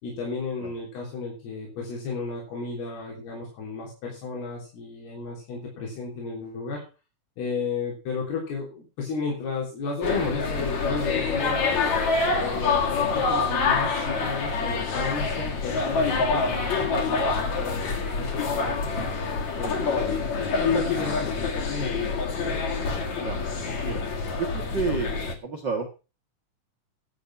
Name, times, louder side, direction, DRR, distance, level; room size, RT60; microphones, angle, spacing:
voice 1, 0.0-6.8 7.4-11.7 12.3-19.0 19.6-22.0, left 4 dB, 85° left, -2 dB, 5.4 m, -33 dB
sound 1, 10.0-25.4, left 4 dB, 55° left, 3.0 m, -26 dB
voice 2, 24.4-25.9, right 4 dB, 75° right, 2 dB, 1.0 m, -30 dB
11.5 x 8.1 x 5.8 m, 0.32 s
omnidirectional pair, 4.4 m